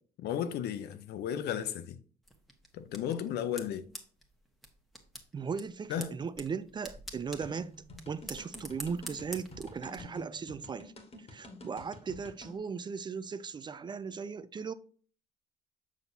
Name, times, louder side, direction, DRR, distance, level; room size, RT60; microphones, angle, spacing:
voice 1, 0.2-2.0 2.7-3.9 5.9-6.2, left 9 dB, 70° left, 0.7 m, -34 dB
sound 1, 2.2-10.0, equal, ahead, 1.4 m, -48 dB
voice 2, 5.3-7.7 8.1-10.9 11.2-14.7, right 6 dB, 25° right, 0.4 m, -38 dB
sound 2, 7.4-12.6, left 1 dB, 35° left, 1.7 m, -49 dB
7.3 x 6.0 x 2.7 m
cardioid pair, 110°, 17 cm